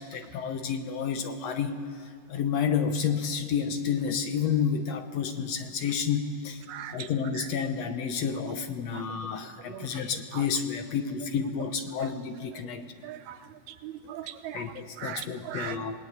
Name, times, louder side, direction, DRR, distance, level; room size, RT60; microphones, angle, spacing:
voice 1, 0.0-1.8 2.3-6.6 6.9-12.8 14.5-16.0, left 7 dB, 70° left, 7 dB, 1.6 m, -30 dB
voice 2, 6.7-7.1 8.9-9.0 9.7-9.9 10.3-10.4 13.0-13.4 13.8-14.6 15.0-15.8, right 11 dB, 90° right, 10 dB, 3.0 m, -39 dB
26.0 x 19.0 x 9.4 m, 2.2 s
omnidirectional pair, 4.3 m